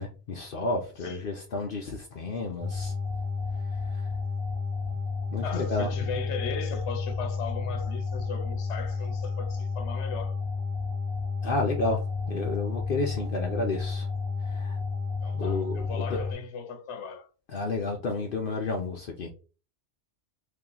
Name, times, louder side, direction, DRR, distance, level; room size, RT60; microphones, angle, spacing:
voice 1, 0.0-2.9 3.9-4.1 5.3-5.9 11.4-14.1 14.4-14.8 15.3-16.2 17.5-19.3, left 3 dB, 55° left, 0.8 m, -31 dB
sound 1, 2.6-16.3, left 4 dB, 5° left, 1.6 m, -31 dB
voice 2, 5.4-10.4 15.2-17.3, left 5 dB, 85° left, 1.0 m, -37 dB
3.0 x 2.9 x 3.8 m
omnidirectional pair, 1.1 m